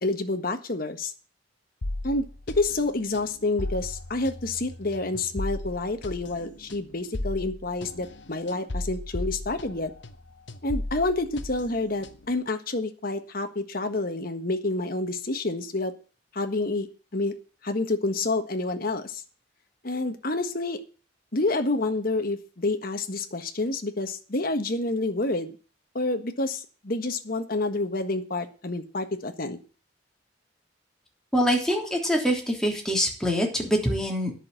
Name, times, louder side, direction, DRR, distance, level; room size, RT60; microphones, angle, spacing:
voice 1, 0.0-1.1 2.0-2.3 2.5-9.9 10.6-15.9 16.3-16.9 17.1-17.3 17.6-19.2 19.8-20.8 21.3-25.6 25.9-29.6, left 2 dB, 50° left, 7 dB, 1.5 m, -28 dB
sound 1, 1.8-10.2 10.5-12.4, left 1 dB, 75° left, 1.2 m, -36 dB
voice 2, 31.3-34.3, equal, 5° left, -1 dB, 3.3 m, -24 dB
11.0 x 6.5 x 8.8 m, 0.36 s
head